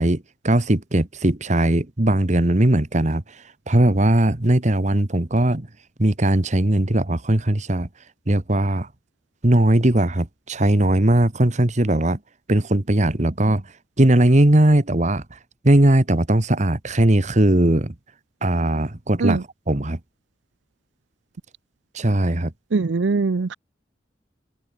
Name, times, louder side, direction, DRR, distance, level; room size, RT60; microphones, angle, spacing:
voice 1, 0.0-3.2 3.7-5.7 6.0-7.9 8.3-8.9 9.4-12.2 12.5-13.6 14.0-15.2 15.6-17.9 18.4-20.0 21.9-22.5, right 1 dB, 40° right, 1.5 m, -19 dB
voice 2, 22.7-23.5, right 4 dB, 90° right, 0.6 m, -21 dB
head